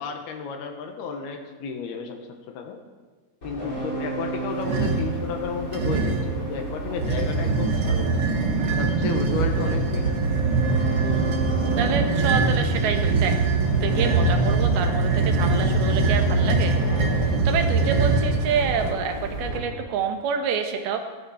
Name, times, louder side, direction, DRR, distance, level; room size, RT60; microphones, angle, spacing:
voice 1, 0.0-2.8 3.4-8.2 8.8-10.2, left 6 dB, 80° left, 4 dB, 3.3 m, -33 dB
sound 1, 3.4-19.6, right 1 dB, 25° left, 2.9 m, -32 dB
sound 2, 4.6-5.1 5.7-6.4 6.9-19.0, right 4 dB, 55° right, 1.8 m, -23 dB
voice 2, 11.0-13.3 13.6-21.0, right 6 dB, 80° right, 5 dB, 3.1 m, -28 dB
Bowed string instrument, 13.3-18.0, left 2 dB, 60° left, 1.7 m, -31 dB
16.5 x 12.5 x 4.3 m, 1.4 s
omnidirectional pair, 4.4 m